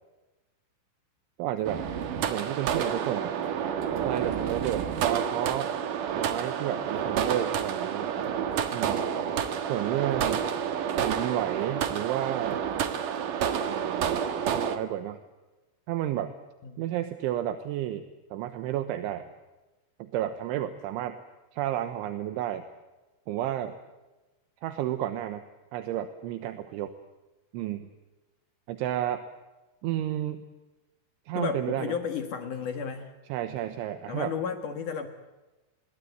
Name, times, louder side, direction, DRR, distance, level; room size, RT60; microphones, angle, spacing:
voice 1, 1.4-1.8 2.3-3.3 4.0-5.7 6.2-8.2 8.7-9.1 9.7-10.4 11.0-12.6 13.6-14.2 14.5-15.2 15.9-16.3 16.8-18.0 18.3-19.3 20.0-21.2 21.5-22.7 23.3-23.8 24.6-25.4 25.7-27.0 27.5-27.9 28.7-29.2 29.8-30.4 31.3-31.9 33.3-34.3, right 12 dB, 75° right, 9 dB, 3.3 m, -31 dB
sound 1, 1.6-14.8, right 8 dB, 60° right, 2.3 m, -29 dB
voice 2, 31.3-33.1 34.1-35.1, left 6 dB, 60° left, 7 dB, 2.2 m, -33 dB
28.0 x 21.5 x 8.2 m, 1.1 s
omnidirectional pair, 5.8 m